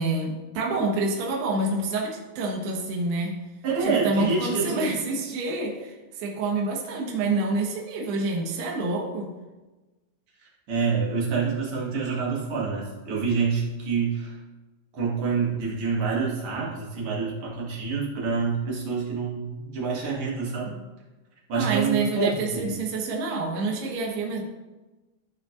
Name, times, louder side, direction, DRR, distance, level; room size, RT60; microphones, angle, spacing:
voice 1, 0.0-3.3 3.8-9.3 21.5-24.4, right 3 dB, 75° right, -1 dB, 3.3 m, -27 dB
voice 2, 3.6-4.8 10.7-14.4 14.9-20.7 21.5-22.3 22.6-22.7, right 5 dB, 55° right, -4 dB, 1.6 m, -27 dB
15.0 x 5.7 x 2.6 m, 1.1 s
omnidirectional pair, 4.9 m